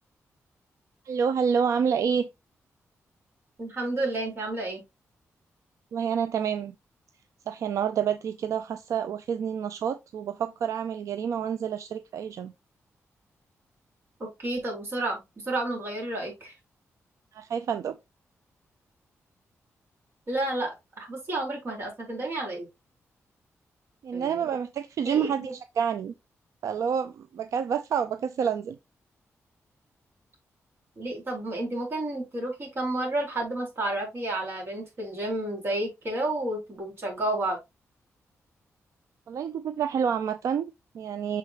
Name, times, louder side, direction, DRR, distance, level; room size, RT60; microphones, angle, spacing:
voice 1, 1.1-2.3 5.9-6.7 7.5-12.5 17.3-18.0 24.0-26.1 26.6-28.8 39.3-41.4, right 7 dB, 80° right, 0.4 m, -28 dB
voice 2, 3.6-4.8 14.2-16.5 20.3-22.7 24.1-24.5 25.0-25.5 31.0-37.6, right 2 dB, 50° right, 4.1 m, -31 dB
6.6 x 4.8 x 2.9 m
cardioid pair, 90°, 5 cm